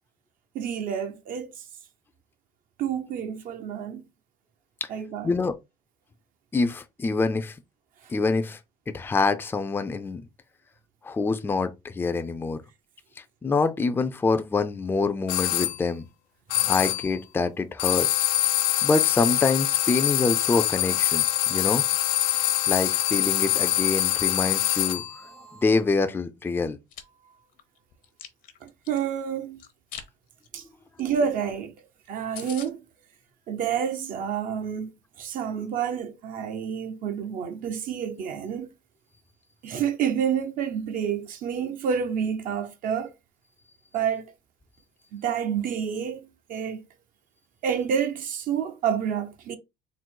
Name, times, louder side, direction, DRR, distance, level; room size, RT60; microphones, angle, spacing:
voice 1, 0.5-1.6 2.8-4.0 4.9-5.3 16.5-16.7 28.6-29.6 30.5-30.6 31.0-31.7 32.1-32.8 33.5-34.9 35.2-38.7 39.6-43.1 43.9-44.3 45.1-46.8 47.6-49.6, right 8 dB, 60° right, 0.7 m, -29 dB
voice 2, 6.5-7.5 8.1-8.6 8.9-10.2 11.0-12.6 13.4-16.1 16.7-18.3 18.8-21.8 22.7-25.0 25.5-26.8, left 4 dB, 15° left, 0.4 m, -25 dB
sound 1, 15.3-15.8 16.5-17.1 17.8-25.2, left 15 dB, 85° left, 0.4 m, -24 dB
sound 2, 20.7-25.8, right 4 dB, 90° right, 1.3 m, -50 dB
Chewing mastication, 26.7-27.0 27.5-29.0 29.6-30.1 30.4-30.6 31.0-31.1 31.3-31.4 31.8-31.9 32.1-32.2 32.3-32.7, left 9 dB, 60° left, 0.8 m, -41 dB
3.9 x 2.0 x 4.4 m
cardioid pair, 110°, 16 cm